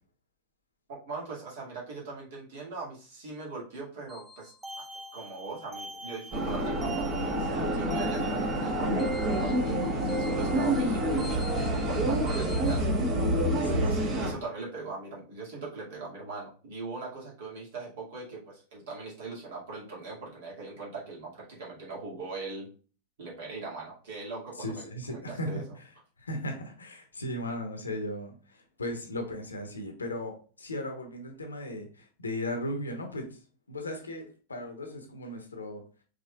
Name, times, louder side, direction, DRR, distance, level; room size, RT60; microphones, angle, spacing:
voice 1, 0.9-4.5 5.1-12.9 13.7-22.7 23.2-25.6, right 3 dB, 55° right, -4 dB, 2.0 m, -40 dB
sound 1, 4.1-12.8, right 3 dB, 10° right, 0.6 m, -42 dB
sound 2, 6.3-14.3, right 1 dB, 35° right, 1.1 m, -28 dB
voice 2, 13.6-14.3 24.6-25.9 26.2-33.3 33.7-35.8, left 1 dB, 75° left, 4 dB, 0.9 m, -37 dB
5.1 x 3.5 x 2.3 m, 0.37 s
figure-of-eight pair, 90°, 0 cm